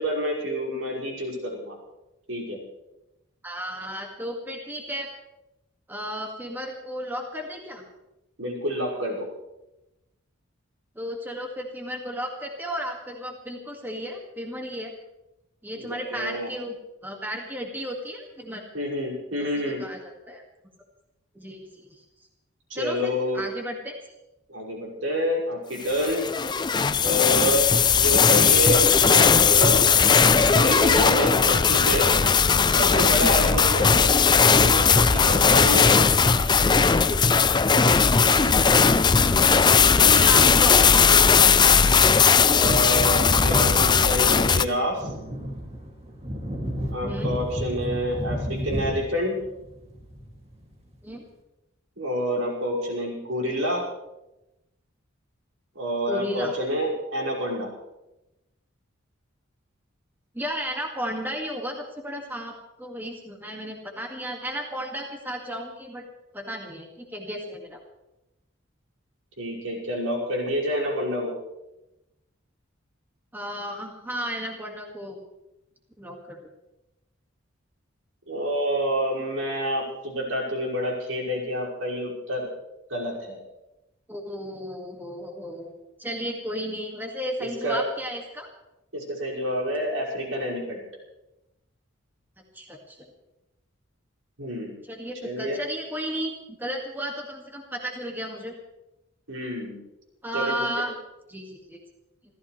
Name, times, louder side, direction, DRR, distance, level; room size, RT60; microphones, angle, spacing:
voice 1, 0.0-1.8 2.3-2.6 8.4-9.3 15.8-16.5 18.7-19.8 22.7-23.4 24.5-26.2 27.0-27.7 28.0-28.8 29.1-29.8 30.5-32.1 32.6-34.2 34.6-36.0 39.9-40.3 42.5-45.1 46.9-49.3 52.0-53.8 55.7-57.7 69.4-71.4 78.3-82.5 82.9-83.4 87.4-87.9 88.9-90.8 94.4-94.8 95.2-95.6 99.3-99.8 100.3-100.7, equal, 80° right, -3 dB, 5.7 m, -28 dB
voice 2, 3.4-5.1 5.9-7.8 11.0-14.9 15.6-16.8 17.0-18.6 19.6-20.0 20.3-20.4 21.3-21.9 22.7-23.9 33.8-34.0 36.2-36.6 38.2-39.4 39.9-41.4 47.0-47.3 51.0-51.2 56.1-56.5 60.3-66.0 66.3-67.8 73.3-75.2 76.0-76.5 84.1-85.7 86.0-88.5 92.5-93.1 94.9-96.3 96.6-98.5 100.2-101.0 101.3-101.8, equal, 10° right, 1 dB, 2.0 m, -34 dB
sound 1, 25.9-44.6, left 6 dB, 20° left, 0.4 m, -18 dB
Wind / Thunder, 42.4-50.7 50.9-51.0, equal, 30° right, 2.5 m, -31 dB
27.5 x 14.5 x 3.3 m, 0.95 s
head